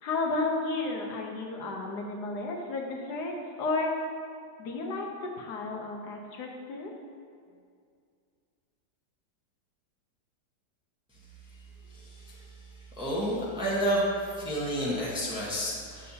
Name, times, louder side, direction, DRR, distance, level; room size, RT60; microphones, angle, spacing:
voice 1, 0.0-3.3 3.6-3.9 4.6-6.9, left 3 dB, 70° left, 0 dB, 1.3 m, -32 dB
voice 2, 11.9-16.1, equal, 5° right, -6 dB, 0.9 m, -31 dB
8.2 x 6.5 x 2.8 m, 2.2 s
omnidirectional pair, 1.9 m